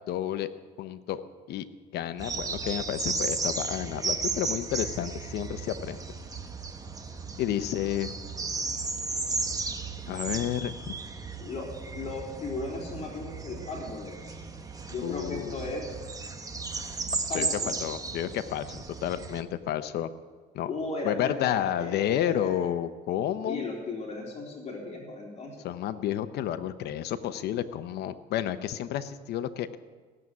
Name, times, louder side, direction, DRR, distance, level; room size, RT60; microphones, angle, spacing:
voice 1, 0.1-0.5 0.8-1.2 1.5-1.6 1.9-6.0 7.4-8.1 10.0-11.0 15.0-15.6 17.3-20.1 20.5-20.7 21.0-23.6 25.6-29.8, left 11 dB, 75° left, 12 dB, 0.9 m, -31 dB
sound 1, 2.2-19.4, right 4 dB, 20° right, 1.1 m, -35 dB
voice 2, 11.9-14.4 14.9-16.0 17.0-17.8 20.7-22.7 23.4-25.6, left 3 dB, 40° left, -2 dB, 3.7 m, -36 dB
17.0 x 7.6 x 9.6 m, 1.5 s
cardioid pair, 110°, 17 cm